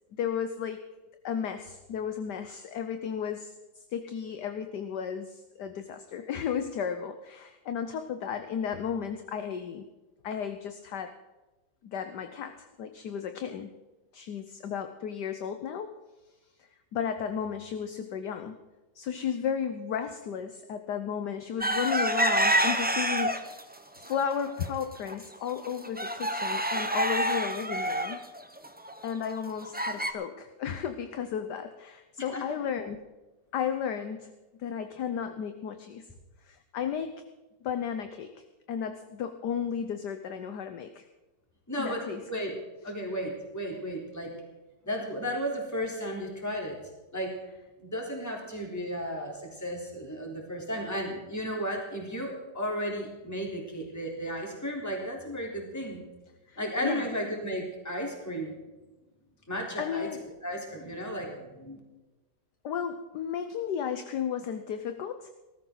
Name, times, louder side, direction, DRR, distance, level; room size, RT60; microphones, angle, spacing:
voice 1, 0.1-0.8 1.2-9.9 10.2-11.2 11.8-13.7 14.1-15.9 16.6-18.6 18.9-23.6 24.0-28.2 29.0-33.0 33.5-34.3 34.6-36.1 36.4-37.2 37.6-41.0 41.8-42.2 56.5-57.1 59.8-60.2 62.6-65.3, left 8 dB, 65° left, 8 dB, 1.4 m, -34 dB
sound 1, 21.6-23.6 24.0-24.7 25.1-25.2 25.5-30.1, right 1 dB, 10° right, 0.6 m, -28 dB
voice 2, 32.2-32.6 41.7-42.6 42.8-44.3 44.8-46.8 47.1-47.3 47.8-56.0 56.6-58.6 59.5-60.1 60.4-61.8, equal, 10° left, -1 dB, 3.6 m, -34 dB
19.5 x 13.5 x 4.0 m, 1.2 s
omnidirectional pair, 2.0 m